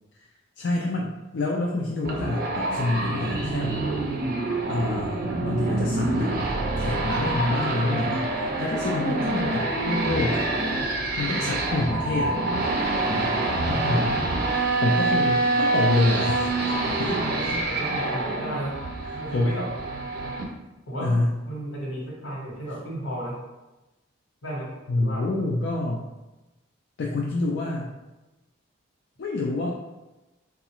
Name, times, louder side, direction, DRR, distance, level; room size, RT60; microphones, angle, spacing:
voice 1, 0.6-3.8 4.7-6.4 6.8-8.3 8.6-10.4 11.2-12.4 13.0-13.3 13.7-14.2 14.8-16.5 17.0-17.1 17.4-17.5 19.0-19.6 21.0-21.3 24.9-26.0 27.0-27.9 29.2-29.7, left 2 dB, 55° left, -2 dB, 0.3 m, -27 dB
sound 1, 2.0-20.4, right 2 dB, 45° right, 0.5 m, -26 dB
voice 2, 13.8-14.1 17.3-18.8 19.1-19.7 20.9-21.1 21.5-23.4 24.4-24.7 25.0-25.3, right 1 dB, 80° left, -4 dB, 1.3 m, -34 dB
3.9 x 2.4 x 2.9 m, 1.1 s
head